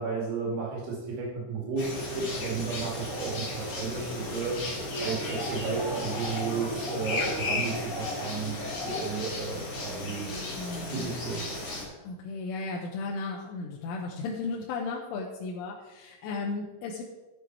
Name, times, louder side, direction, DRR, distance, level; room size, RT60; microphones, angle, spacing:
voice 1, 0.0-10.3 10.8-11.4, right 4 dB, 70° right, -2 dB, 4.4 m, -33 dB
sound 1, 1.8-11.8, left 2 dB, 40° left, 3.2 m, -34 dB
voice 2, 10.5-11.1 12.0-17.0, left 3 dB, 80° left, -1 dB, 3.4 m, -35 dB
12.0 x 7.8 x 4.6 m, 1.2 s
omnidirectional pair, 5.8 m